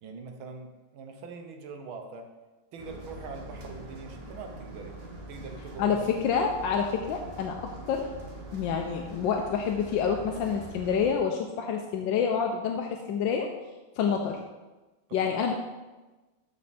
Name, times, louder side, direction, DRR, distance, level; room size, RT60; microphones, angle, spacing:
voice 1, 0.0-2.3 2.7-6.0 15.1-15.5, right 4 dB, 75° right, 4 dB, 1.7 m, -43 dB
sound 1, 2.8-11.1, right 1 dB, 35° right, 1.1 m, -43 dB
voice 2, 5.8-8.1 8.5-13.5 14.0-14.4 15.1-15.5, left 6 dB, 75° left, 3 dB, 1.3 m, -28 dB
12.5 x 4.3 x 4.2 m, 1.2 s
omnidirectional pair, 2.2 m